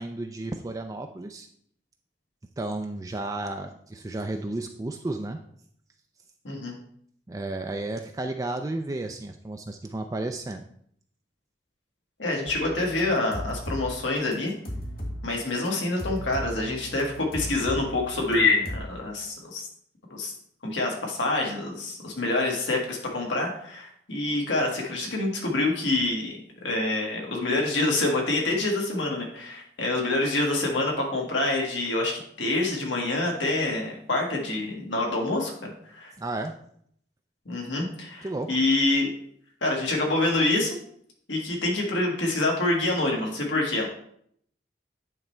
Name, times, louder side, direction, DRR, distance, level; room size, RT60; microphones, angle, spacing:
voice 1, 0.0-1.5 2.6-5.4 7.3-10.6 36.2-36.5 38.2-38.5, right 2 dB, 20° right, 5 dB, 0.3 m, -32 dB
voice 2, 12.2-14.5 15.2-19.6 20.1-20.3 20.6-26.4 26.6-36.1 37.4-39.1 39.6-40.8 41.3-43.9, left 2 dB, 85° left, -1 dB, 1.6 m, -26 dB
sound 1, 12.5-13.9 14.1-15.2 15.6-15.7 16.0-18.8, equal, 50° left, 1.8 m, -36 dB
9.7 x 3.2 x 4.4 m, 0.65 s
head